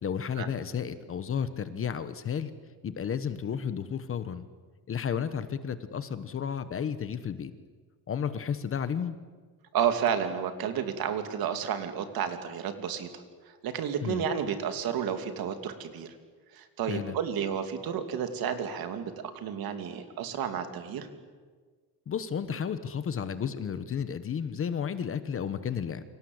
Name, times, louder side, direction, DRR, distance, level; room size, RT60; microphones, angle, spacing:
voice 1, 0.0-2.5 2.8-4.5 4.9-7.5 8.1-9.2 14.0-14.2 16.9-17.2 22.1-26.0, left 7 dB, 30° left, 12 dB, 1.0 m, -32 dB
voice 2, 9.7-16.2 16.5-21.1, right 8 dB, 55° right, 8 dB, 2.7 m, -31 dB
29.0 x 25.0 x 8.0 m, 1.5 s
cardioid pair, 170°, 43 cm